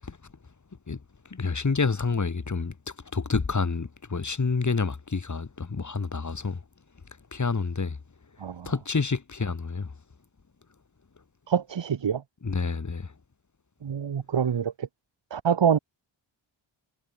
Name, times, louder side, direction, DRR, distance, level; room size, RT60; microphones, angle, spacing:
voice 1, 0.9-6.6 7.3-8.0 8.6-10.0 12.4-13.1, left 4 dB, 35° left, 7.8 m, -28 dB
voice 2, 8.4-8.7 11.5-12.2 13.8-14.9 15.3-15.8, right 7 dB, 65° right, 2.6 m, -25 dB
wide cardioid pair, 165°, 47 cm